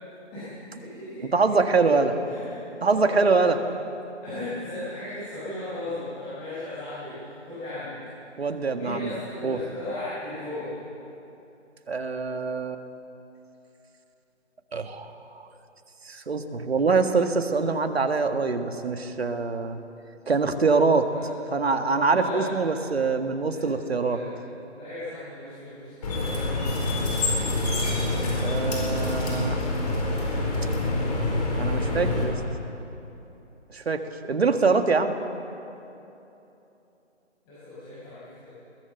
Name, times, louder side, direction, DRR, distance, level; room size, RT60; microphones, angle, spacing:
voice 1, 0.3-1.3 1.8-2.5 2.8-3.5 4.2-7.9 8.8-10.8 21.1-21.2 22.1-22.4 22.7-22.8 23.5-23.6 24.0-24.3 24.7-26.3 37.4-38.5, left 1 dB, 10° left, -12 dB, 5.0 m, -36 dB
voice 2, 1.3-2.1 2.8-3.6 8.4-9.1 9.4-9.6 11.9-12.8 14.7-15.1 16.1-19.8 20.3-21.1 21.5-24.2 28.4-29.6 31.6-32.3 33.7-34.0 34.3-35.1, right 4 dB, 60° right, 7 dB, 1.8 m, -24 dB
sound 1, 26.0-32.2, left 2 dB, 35° left, 4.7 m, -26 dB
22.0 x 17.0 x 8.0 m, 2.9 s
figure-of-eight pair, 165°, 36 cm